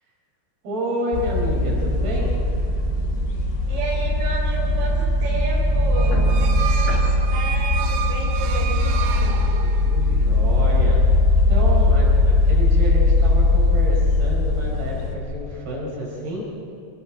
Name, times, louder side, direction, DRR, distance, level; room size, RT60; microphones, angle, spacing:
voice 1, 0.6-2.3 9.6-11.0 11.5-16.4, equal, 60° right, -3 dB, 6.7 m, -29 dB
sound 1, 1.1-15.1, left 2 dB, 90° left, 4.4 m, -19 dB
voice 2, 3.7-7.0 7.3-9.1, right 2 dB, 35° right, -4 dB, 5.2 m, -31 dB
sound 2, 5.9-10.1, right 7 dB, 75° right, 3.2 m, -31 dB
27.0 x 19.5 x 6.4 m, 2.6 s
omnidirectional pair, 5.0 m